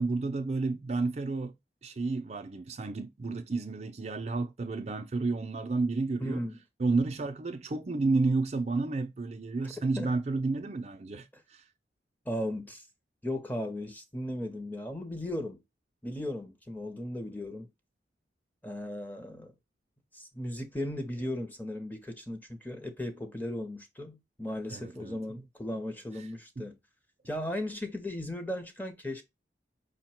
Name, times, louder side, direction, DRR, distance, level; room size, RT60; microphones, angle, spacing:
voice 1, 0.0-1.6 1.8-6.4 6.8-11.6 24.7-25.2 26.6-26.7, right 3 dB, 40° right, 0.4 m, -31 dB
voice 2, 6.2-6.6 9.6-9.7 10.0-10.1 12.3-12.9 13.2-15.6 16.0-17.7 18.6-19.5 20.1-26.7 27.3-29.2, left 1 dB, 10° left, 0.7 m, -36 dB
5.4 x 2.2 x 4.3 m
head